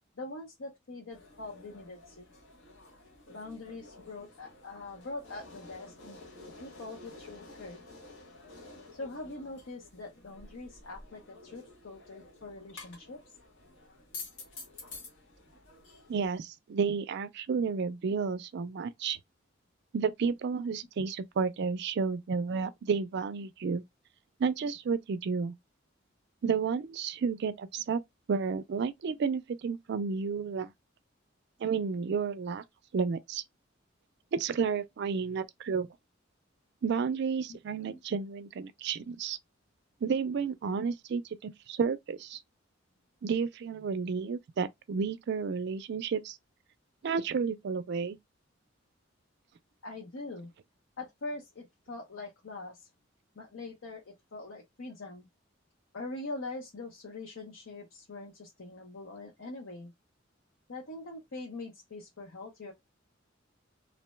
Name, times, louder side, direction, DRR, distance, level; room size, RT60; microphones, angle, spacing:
voice 1, 0.2-2.3 3.3-6.2 6.6-7.8 8.9-13.2 37.5-38.0 49.8-50.5 51.0-52.9 53.4-55.3 55.9-59.9 60.7-62.7, left 2 dB, 85° left, 0.7 m, -43 dB
sound 1, 1.1-16.4, left 3 dB, 65° left, 1.1 m, -50 dB
voice 2, 16.1-19.2 19.9-23.8 24.4-25.5 26.4-28.0 28.3-30.7 31.6-32.6 32.9-33.4 34.3-35.9 36.8-39.4 40.0-42.4 43.2-46.4 47.0-48.2, right 5 dB, 60° right, 0.4 m, -31 dB
2.6 x 2.1 x 3.1 m
head